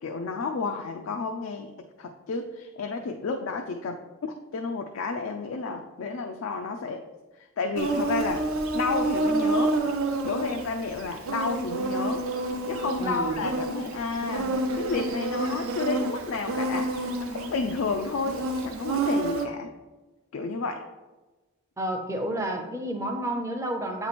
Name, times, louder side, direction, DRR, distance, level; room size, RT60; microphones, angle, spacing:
voice 1, 0.0-7.1 7.6-8.5 8.7-9.8 10.2-12.3 12.7-19.7 20.3-20.8, left 4 dB, 70° left, 4 dB, 0.4 m, -31 dB
Insect, 7.8-19.5, right 2 dB, 75° right, 0.6 m, -29 dB
voice 2, 13.0-13.4 21.8-24.1, right 1 dB, 15° right, 4 dB, 0.5 m, -30 dB
7.9 x 3.0 x 4.2 m, 1.2 s
head